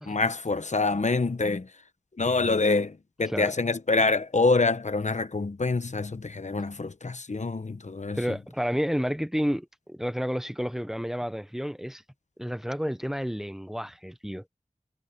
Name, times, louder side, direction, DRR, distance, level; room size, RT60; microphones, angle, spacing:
voice 1, 0.0-1.8 2.2-8.4, left 3 dB, 65° left, 1.0 m, -26 dB
voice 2, 8.1-12.0 12.4-14.5, equal, 5° right, 0.8 m, -30 dB
wide cardioid pair, 50°, 13 cm